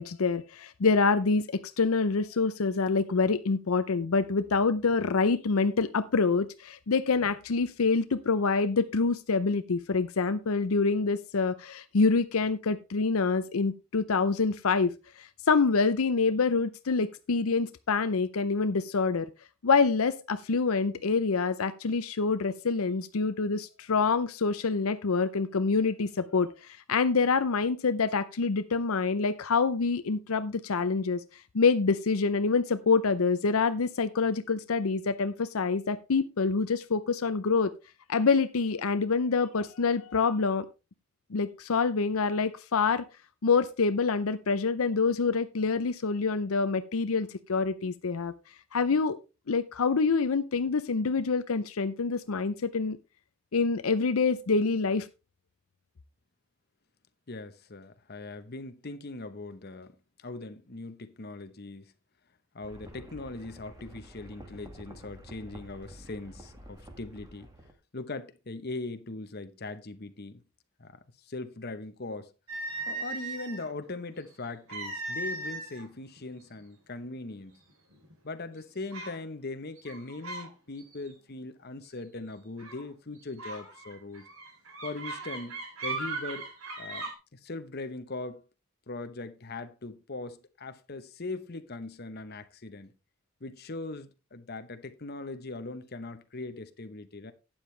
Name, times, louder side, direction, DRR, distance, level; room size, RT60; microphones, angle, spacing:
voice 1, 0.0-19.3 19.6-37.7 38.1-40.7 41.3-43.0 43.4-48.3 48.7-49.2 49.5-53.0 53.5-55.1, left 4 dB, 80° left, 0.6 m, -26 dB
voice 2, 57.3-61.9 62.5-67.5 67.9-70.4 70.8-72.3 72.9-77.6 78.2-84.2 84.8-86.5 86.8-88.4 88.9-92.9 93.4-97.3, left 2 dB, 45° left, 1.0 m, -40 dB
sound 1, 62.6-67.7, right 1 dB, 15° right, 1.7 m, -49 dB
sound 2, 72.5-73.7 74.7-75.8 76.2-76.4 77.1-77.2 77.7-78.1 78.9-79.2 79.8-80.5 80.8-81.1 82.6-82.8 83.4-87.1, right 3 dB, 80° right, 3.6 m, -37 dB
12.0 x 8.9 x 3.2 m
head